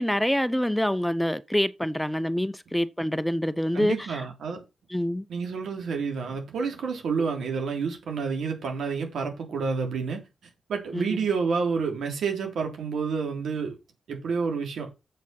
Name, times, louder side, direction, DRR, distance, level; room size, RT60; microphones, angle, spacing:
voice 1, 0.0-4.2 4.9-5.3 10.9-11.2, equal, 5° left, 0.6 m, -26 dB
voice 2, 3.7-4.6 5.3-10.2 10.7-13.8 14.1-14.9, right 5 dB, 80° right, 3.3 m, -29 dB
7.4 x 6.4 x 5.8 m
cardioid pair, 70°, 0 cm